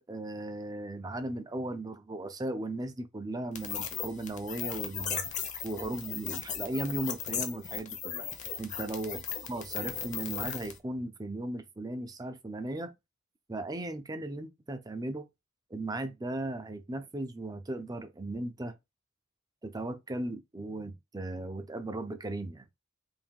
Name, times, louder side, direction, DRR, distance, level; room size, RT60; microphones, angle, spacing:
voice 1, 0.0-8.3 8.6-9.2 9.5-12.9 13.5-15.3 15.7-18.7 19.6-22.7, right 2 dB, 15° right, 0.4 m, -37 dB
sound 1, 3.5-10.8, left 7 dB, 35° left, 0.7 m, -37 dB
3.6 x 2.6 x 3.5 m
head